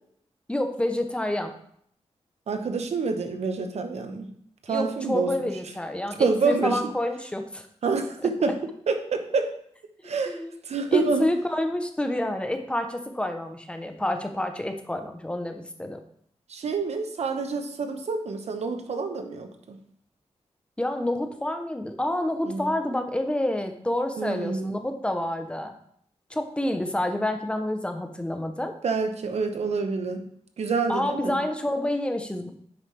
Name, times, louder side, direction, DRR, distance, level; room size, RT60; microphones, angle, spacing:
voice 1, 0.5-1.5 4.7-7.7 8.2-8.3 10.2-10.5 10.9-16.0 20.8-25.7 26.3-28.7 30.9-32.5, left 1 dB, 10° left, 6 dB, 0.6 m, -28 dB
voice 2, 2.5-4.3 4.7-5.3 6.2-6.8 7.8-8.6 8.9-9.5 10.0-10.4 10.7-11.3 16.5-19.8 22.5-22.7 24.2-24.7 28.8-30.2 30.6-31.4, right 4 dB, 75° right, 6 dB, 0.9 m, -27 dB
9.0 x 5.6 x 3.2 m, 0.66 s
wide cardioid pair, 180°, 11 cm